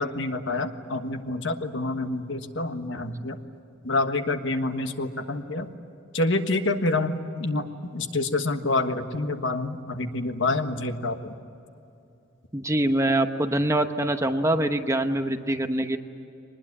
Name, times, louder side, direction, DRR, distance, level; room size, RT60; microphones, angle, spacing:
voice 1, 0.0-3.4 3.8-5.7 6.1-11.3, left 2 dB, 65° left, 7 dB, 1.5 m, -27 dB
voice 2, 12.5-16.0, right 1 dB, 15° right, 6 dB, 1.0 m, -24 dB
23.5 x 20.5 x 9.7 m, 2.8 s
head